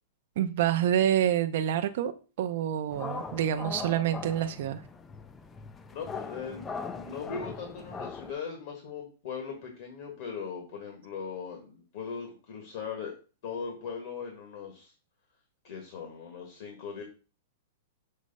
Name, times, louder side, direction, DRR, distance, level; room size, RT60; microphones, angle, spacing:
voice 1, 0.4-2.1 2.4-4.8, right 10 dB, 50° right, 0.4 m, -27 dB
sound 1, 2.9-8.3, left 4 dB, 10° left, 0.3 m, -40 dB
voice 2, 5.9-13.2 13.4-14.9 15.6-17.0, left 6 dB, 45° left, 1.4 m, -39 dB
6.4 x 3.1 x 5.3 m
supercardioid pair, 170°, 0 cm